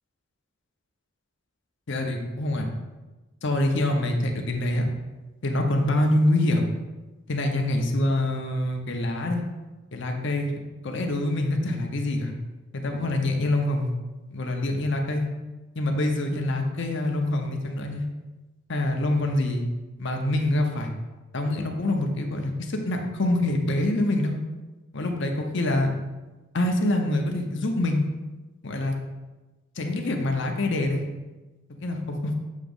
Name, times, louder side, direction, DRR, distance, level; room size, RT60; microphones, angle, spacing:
voice 1, 1.9-2.7 3.4-4.9 5.4-6.7 7.3-9.4 9.9-10.6 10.8-12.3 12.7-13.9 14.3-15.3 15.8-18.1 18.7-19.6 20.0-20.9 21.3-24.4 24.9-25.9 26.5-28.1 28.6-28.9 29.8-31.1 31.8-32.3, left 1 dB, 60° left, 3 dB, 0.8 m, -25 dB
7.3 x 3.0 x 5.4 m, 1.1 s
head